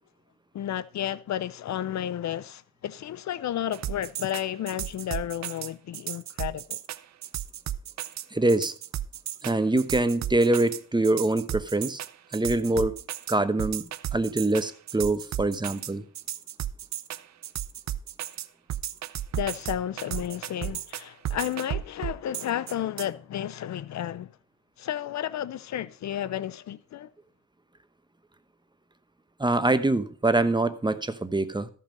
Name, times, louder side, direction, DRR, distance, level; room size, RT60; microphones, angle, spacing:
voice 1, 0.5-6.8 19.3-24.3 24.8-27.1, left 11 dB, 65° left, 0.5 m, -32 dB
sound 1, 3.7-23.1, right 11 dB, 65° right, 0.6 m, -34 dB
voice 2, 8.3-8.7 9.4-12.0 12.3-13.0 13.3-16.0 29.4-31.7, right 2 dB, 15° right, 0.9 m, -24 dB
14.0 x 5.6 x 5.2 m
cardioid pair, 75°, 30 cm